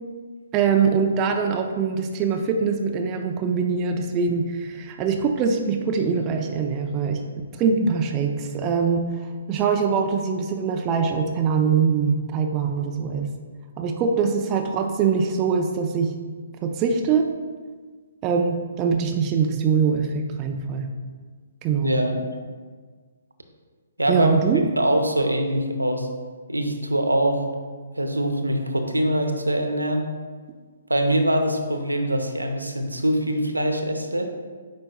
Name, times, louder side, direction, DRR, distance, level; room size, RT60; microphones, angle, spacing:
voice 1, 0.5-7.3 7.6-9.1 9.5-13.3 13.8-16.1 16.6-17.3 18.2-20.9 21.6-21.9 24.1-24.6, right 5 dB, 25° right, 4 dB, 0.5 m, -23 dB
voice 2, 21.8-22.2 24.0-24.3 24.8-26.1 26.5-27.4 28.0-30.0 30.9-34.3, right 1 dB, 85° right, 4 dB, 0.7 m, -23 dB
8.9 x 5.2 x 2.3 m, 1.5 s
figure-of-eight pair, 130°, 0 cm